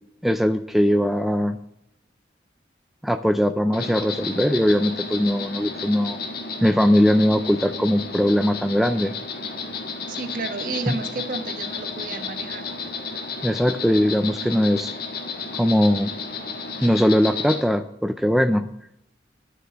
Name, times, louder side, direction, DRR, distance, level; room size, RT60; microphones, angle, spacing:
voice 1, 0.2-1.6 3.0-6.2 6.6-9.1 10.9-11.0 13.4-14.9 15.6-16.1 16.8-18.7, equal, ahead, 8 dB, 0.4 m, -20 dB
Insect, 3.7-17.6, left 4 dB, 55° left, 1.5 m, -32 dB
voice 2, 10.1-12.7, right 3 dB, 50° right, 8 dB, 1.2 m, -31 dB
11.0 x 6.7 x 7.9 m, 0.80 s
head